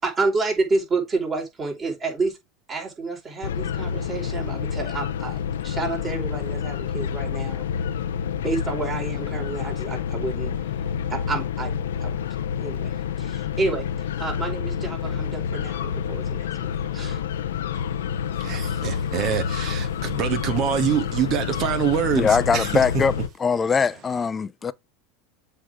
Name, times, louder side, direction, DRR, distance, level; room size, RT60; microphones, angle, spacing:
voice 1, 0.0-2.4 2.7-7.6 8.3-10.7 11.1-12.1 12.6-12.9 13.2-17.2, right 3 dB, 30° right, 4.9 m, -29 dB
sound 1, 3.4-23.3, left 8 dB, 85° left, 0.8 m, -28 dB
voice 2, 18.4-22.8, right 8 dB, 50° right, 2.1 m, -25 dB
voice 3, 22.2-23.1 23.4-24.7, left 5 dB, 25° left, 0.7 m, -21 dB
7.7 x 4.9 x 3.7 m
hypercardioid pair, 95°, 0 cm